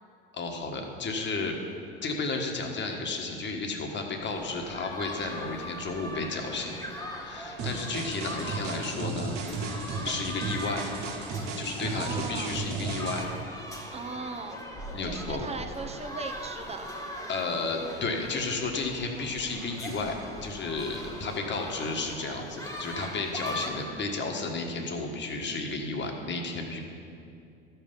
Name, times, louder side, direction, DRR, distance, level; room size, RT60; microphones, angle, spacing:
voice 1, 0.3-1.6 2.0-6.8 7.2-9.4 10.0-10.9 11.6-13.3 14.9-15.5 17.3-26.8, left 3 dB, 35° left, 3 dB, 1.6 m, -33 dB
sound 1, 4.2-23.8, equal, 10° left, 1.6 m, -40 dB
voice 2, 7.6-8.0 11.9-12.5 13.9-14.6 15.0-16.9, right 4 dB, 20° right, 6 dB, 1.0 m, -38 dB
sound 2, 7.6-13.2, right 3 dB, 60° right, 1.6 m, -34 dB
12.5 x 5.8 x 5.5 m, 2.4 s
hypercardioid pair, 80°, 31 cm